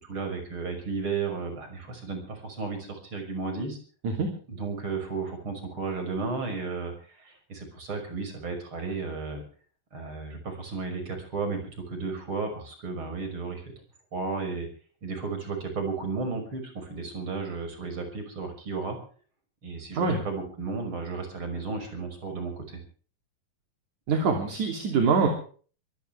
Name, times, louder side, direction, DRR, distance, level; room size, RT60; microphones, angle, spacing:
voice 1, 0.0-3.8 4.5-9.4 9.9-13.6 14.1-14.7 15.0-19.0 19.6-22.8, right 4 dB, 35° right, 5 dB, 6.5 m, -33 dB
voice 2, 24.1-25.3, right 5 dB, 55° right, 3 dB, 4.3 m, -24 dB
24.0 x 16.5 x 3.4 m, 0.42 s
omnidirectional pair, 4.1 m